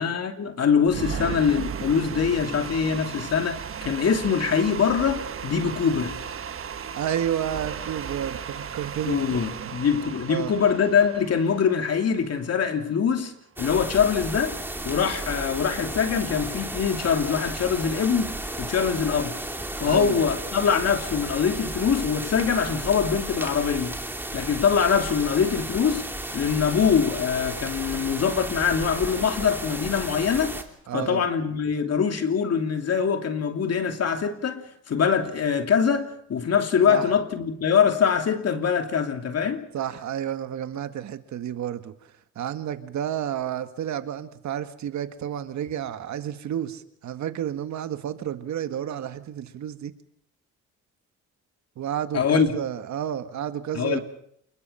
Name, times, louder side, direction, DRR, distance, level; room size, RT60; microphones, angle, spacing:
voice 1, 0.0-6.2 9.0-13.3 13.6-14.6 14.8-18.3 18.6-19.4 19.8-24.0 24.3-26.0 26.3-30.6 30.9-39.6 52.1-52.5 53.7-54.0, left 7 dB, 55° left, 2.9 m, -23 dB
sound 1, 0.9-13.0, right 7 dB, 45° right, 1.3 m, -36 dB
voice 2, 6.9-9.7 10.3-10.5 19.8-20.2 30.9-31.2 36.9-37.1 39.7-41.9 42.3-49.9 51.8-54.0, right 10 dB, 70° right, 1.8 m, -31 dB
sound 2, 13.6-30.6, right 1 dB, 5° right, 3.0 m, -33 dB
28.5 x 21.5 x 5.8 m
cardioid pair, 90°, 30 cm